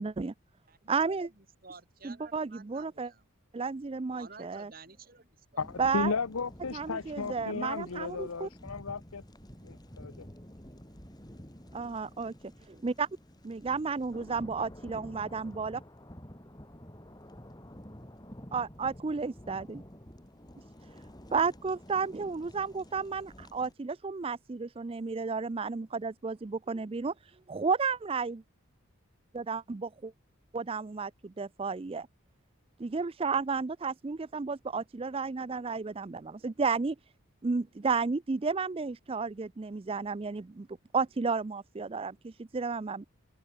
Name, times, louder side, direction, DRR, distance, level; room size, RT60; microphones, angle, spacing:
voice 1, 0.0-0.3 0.9-1.3 2.0-3.1 3.5-4.7 5.8-6.1 6.7-8.5 11.7-12.3 12.7-13.1 13.4-15.8 18.5-19.8 21.3-28.4 29.3-30.1 30.5-32.1 32.8-37.0 37.4-40.7 40.9-43.0, right 4 dB, 25° right, 0.4 m, -32 dB
voice 2, 0.7-3.2 4.2-6.0, right 4 dB, 40° right, 6.3 m, -52 dB
voice 3, 5.6-9.2 9.6-10.3, left 4 dB, 85° left, 0.9 m, -35 dB
sound 1, 5.6-23.7, equal, 20° left, 3.7 m, -50 dB
open air
head